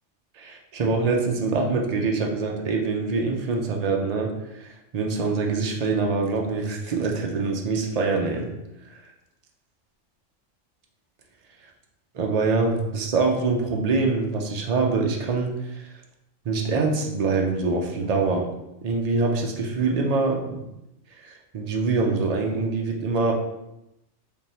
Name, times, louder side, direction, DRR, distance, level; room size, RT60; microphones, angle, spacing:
voice 1, 0.4-8.5 8.9-9.0 12.1-15.9 16.5-18.5 18.8-20.6 21.2-23.3, right 4 dB, 60° right, 1 dB, 0.4 m, -24 dB
3.5 x 2.5 x 4.2 m, 0.88 s
omnidirectional pair, 1.3 m